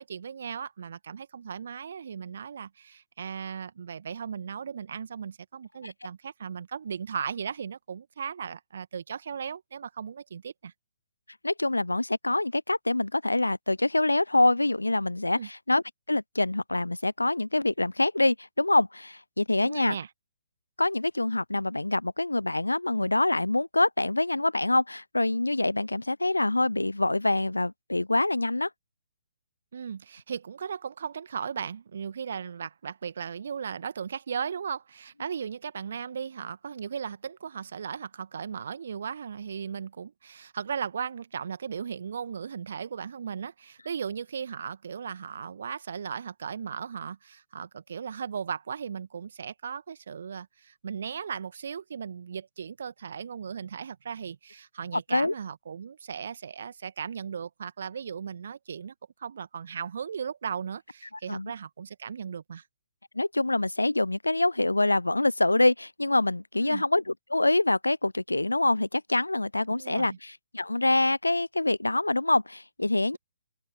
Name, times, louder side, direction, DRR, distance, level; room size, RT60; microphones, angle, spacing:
voice 1, 0.0-10.7 15.3-15.5 19.6-20.1 29.7-58.9 59.2-62.6 66.6-66.8 69.7-70.2, right 7 dB, 50° right, 1.8 m, -37 dB
voice 2, 11.4-20.0 20.8-28.7 55.1-55.3 61.3-61.5 63.1-73.2, left 2 dB, 80° left, 0.9 m, -25 dB
open air
figure-of-eight pair, 130°, 0 cm